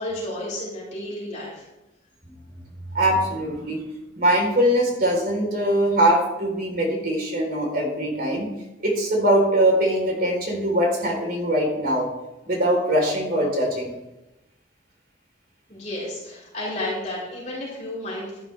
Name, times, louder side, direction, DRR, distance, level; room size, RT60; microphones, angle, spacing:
voice 1, 0.0-1.6 15.7-18.4, left 1 dB, 40° left, -7 dB, 4.5 m, -32 dB
voice 2, 2.9-3.8 4.2-8.5 8.8-12.1 12.5-13.9, right 1 dB, 50° right, 0 dB, 4.0 m, -22 dB
13.0 x 12.0 x 3.4 m, 0.98 s
head